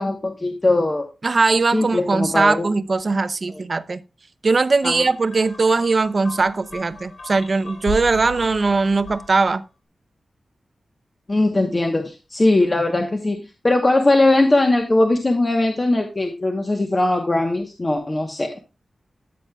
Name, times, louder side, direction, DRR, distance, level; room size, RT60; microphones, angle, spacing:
voice 1, 0.0-1.1 1.7-2.7 4.8-5.0 11.3-13.4 13.6-18.6, left 2 dB, 30° left, 1.0 m, -20 dB
voice 2, 1.2-4.0 4.4-9.6, right 3 dB, 45° right, 0.6 m, -20 dB
sound 1, 4.8-9.6, left 3 dB, 75° left, 3.8 m, -36 dB
13.5 x 7.3 x 2.3 m
wide cardioid pair, 110°, 0 cm